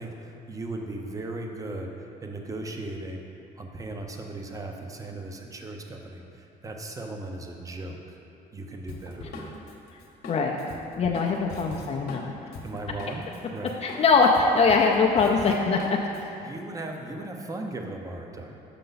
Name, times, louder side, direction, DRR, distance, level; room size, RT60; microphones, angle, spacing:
voice 1, 0.0-3.2 3.6-8.2 8.5-9.5 12.6-13.3 13.5-13.7 16.4-18.5, right 2 dB, 20° right, 2 dB, 0.7 m, -37 dB
Drum kit, 8.9-13.4 13.7-16.2, left 3 dB, 70° left, 1.0 m, -41 dB
voice 2, 10.9-12.3 13.8-16.0, left 4 dB, 40° left, 0 dB, 0.5 m, -22 dB
6.7 x 5.2 x 3.9 m, 2.7 s
cardioid pair, 110°, 17 cm